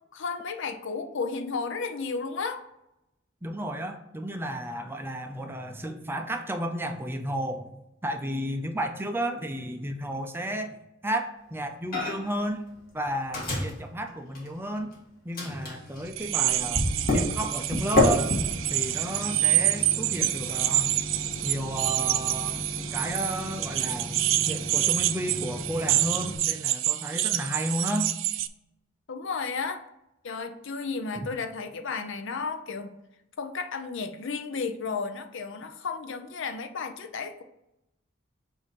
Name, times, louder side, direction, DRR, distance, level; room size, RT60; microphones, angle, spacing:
voice 1, 0.1-2.6 29.1-29.8 30.2-32.9 33.4-37.4, left 4 dB, 65° left, 7 dB, 0.6 m, -33 dB
voice 2, 3.4-7.7 8.0-10.7 11.0-12.6 12.9-14.9 15.2-16.9 17.1-18.3 18.7-20.9 21.4-22.6 22.9-24.2 24.5-28.1 31.2-31.3, right 1 dB, 10° right, 5 dB, 0.5 m, -32 dB
Microwave oven, 11.9-12.4 12.7-14.9 15.3-26.4, left 1 dB, 50° left, 1.7 m, -31 dB
sound 1, 16.1-28.5, right 14 dB, 65° right, 0.4 m, -27 dB
7.5 x 2.7 x 5.2 m, 0.87 s
head